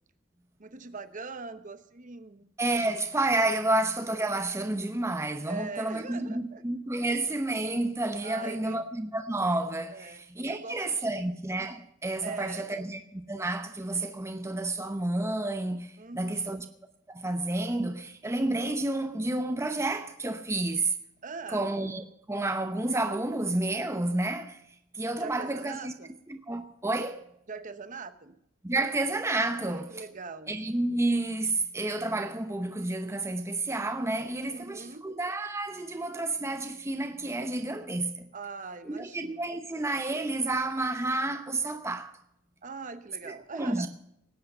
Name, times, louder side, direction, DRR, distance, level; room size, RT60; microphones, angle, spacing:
voice 1, 0.6-2.5 5.5-6.6 8.2-8.8 9.9-10.2 10.5-11.3 12.2-12.8 16.0-16.5 21.2-21.7 25.2-26.1 27.5-28.4 29.5-30.6 34.5-35.0 38.3-39.5 42.6-43.9, right 4 dB, 35° right, 1.0 m, -41 dB
voice 2, 2.6-16.7 17.1-21.0 21.5-25.9 26.3-27.2 28.6-30.0 30.5-38.3 38.8-42.2 43.2-43.9, right 2 dB, 15° right, 0.8 m, -30 dB
19.0 x 8.6 x 6.7 m
head